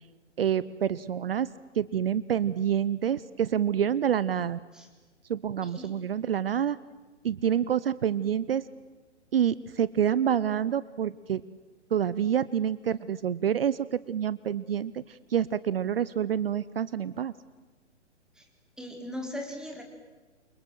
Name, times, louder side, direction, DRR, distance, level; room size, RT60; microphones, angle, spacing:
voice 1, 0.4-1.5 1.7-4.6 5.3-6.8 7.2-8.6 9.3-11.4 11.9-17.3, right 9 dB, 55° right, 18 dB, 0.9 m, -27 dB
voice 2, 18.8-19.8, left 1 dB, ahead, 2 dB, 4.0 m, -38 dB
29.0 x 24.0 x 7.9 m, 1.3 s
figure-of-eight pair, 125°, 36 cm